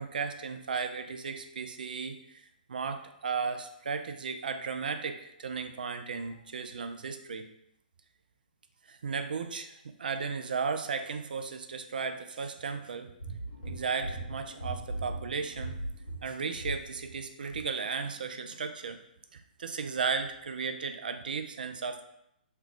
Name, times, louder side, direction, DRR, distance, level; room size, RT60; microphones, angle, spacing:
voice 1, 0.0-7.5 8.8-13.1 13.6-15.8 16.2-19.0 19.3-22.0, right 5 dB, 65° right, 8 dB, 0.4 m, -35 dB
sound 1, 13.2-17.2 17.5-17.7, right 1 dB, 80° left, 1.5 m, -39 dB
3.3 x 2.3 x 3.7 m, 0.77 s
figure-of-eight pair, 125°, 5 cm